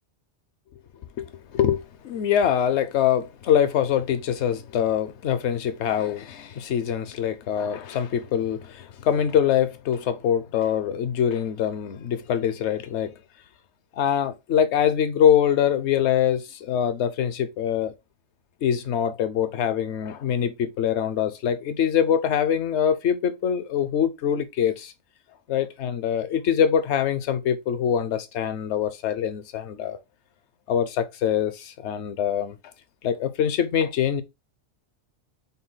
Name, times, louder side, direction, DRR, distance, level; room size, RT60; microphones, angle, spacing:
voice 1, 1.2-13.1 13.9-17.9 18.6-24.9 25.5-30.0 30.7-32.6 33.0-34.2, left 9 dB, 70° left, 0.9 m, -24 dB
5.3 x 2.3 x 3.8 m
omnidirectional pair, 1.2 m